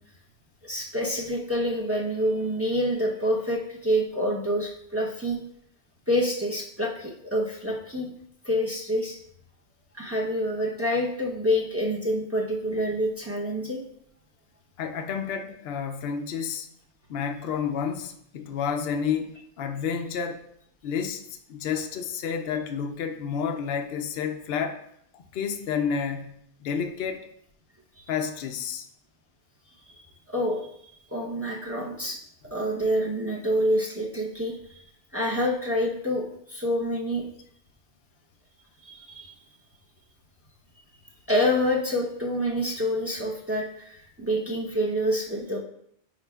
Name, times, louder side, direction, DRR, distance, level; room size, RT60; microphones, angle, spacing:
voice 1, 0.6-5.4 6.1-8.1 8.4-9.2 9.9-13.8 28.0-28.1 30.3-30.7 31.1-32.2 32.5-34.6 35.1-37.2 38.8-39.3 41.3-45.6, equal, 15° right, -3 dB, 0.7 m, -27 dB
voice 2, 14.8-16.7 17.1-20.4 20.8-21.2 21.5-24.8 25.1-27.2 28.1-28.9, left 7 dB, 65° left, 5 dB, 0.7 m, -30 dB
9.8 x 4.5 x 2.3 m, 0.71 s
omnidirectional pair, 1.2 m